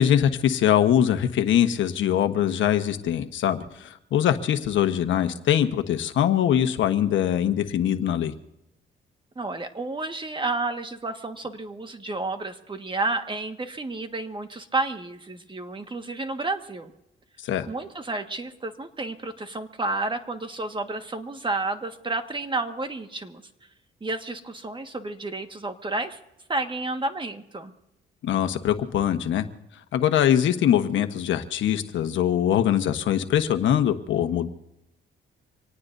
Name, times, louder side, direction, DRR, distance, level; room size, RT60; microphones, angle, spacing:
voice 1, 0.0-8.3 17.4-17.7 28.2-29.5 29.9-34.5, left 10 dB, 75° left, 8 dB, 1.2 m, -22 dB
voice 2, 9.3-16.9 17.7-23.4 24.0-26.2 26.5-27.7, right 2 dB, 25° right, 6 dB, 1.6 m, -31 dB
26.0 x 18.5 x 2.7 m, 0.85 s
cardioid pair, 90°, 20 cm